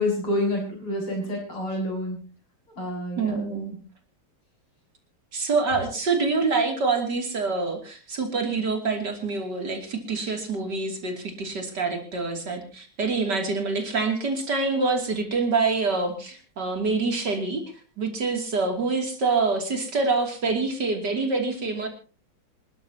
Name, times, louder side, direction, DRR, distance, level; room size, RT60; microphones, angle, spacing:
voice 1, 0.0-2.2 2.8-3.4, left 1 dB, 85° left, -1 dB, 7.6 m, -28 dB
voice 2, 3.2-3.8 5.3-17.6 18.0-21.9, right 4 dB, 50° right, 4 dB, 3.4 m, -26 dB
26.5 x 13.0 x 2.9 m, 0.36 s
omnidirectional pair, 2.3 m